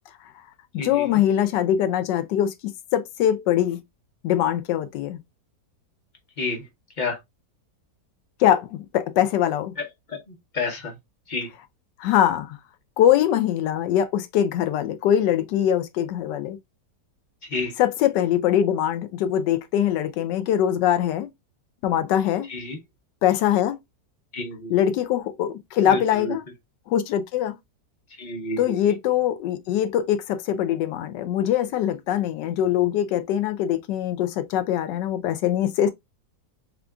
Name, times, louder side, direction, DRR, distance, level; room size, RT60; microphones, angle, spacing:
voice 1, 0.7-2.5 2.9-3.8 4.2-5.2 8.4-9.7 12.0-12.6 13.0-16.6 17.8-21.3 21.8-22.5 23.2-23.8 24.7-26.4 26.9-27.5 28.6-35.9, left 10 dB, 85° left, 1.2 m, -22 dB
voice 2, 10.5-10.9 11.3-11.5 17.5-17.7 22.5-22.8 24.3-24.7 25.9-26.0 28.2-28.7, left 3 dB, 35° left, 0.8 m, -29 dB
3.6 x 3.5 x 2.3 m
omnidirectional pair, 1.8 m